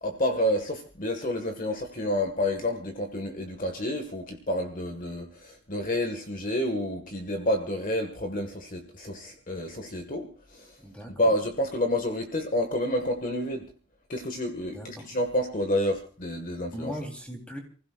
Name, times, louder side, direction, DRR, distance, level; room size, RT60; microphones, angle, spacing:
voice 1, 0.0-10.8 11.2-13.7 14.1-16.9, left 1 dB, 45° left, 5 dB, 1.8 m, -29 dB
voice 2, 10.8-11.3 14.7-15.0 16.7-17.6, equal, 5° left, 2 dB, 3.7 m, -38 dB
29.0 x 16.0 x 2.5 m, 0.39 s
head